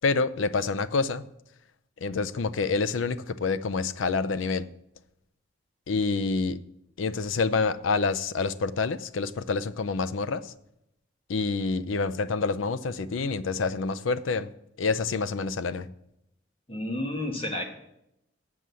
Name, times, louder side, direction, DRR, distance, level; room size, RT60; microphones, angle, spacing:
voice 1, 0.0-1.3 2.0-4.7 5.9-6.6 7.0-10.5 11.3-14.5 14.8-15.9, left 4 dB, 85° left, 13 dB, 0.5 m, -27 dB
voice 2, 16.7-17.6, left 1 dB, 30° left, 3 dB, 1.3 m, -31 dB
7.8 x 7.5 x 6.9 m, 0.81 s
head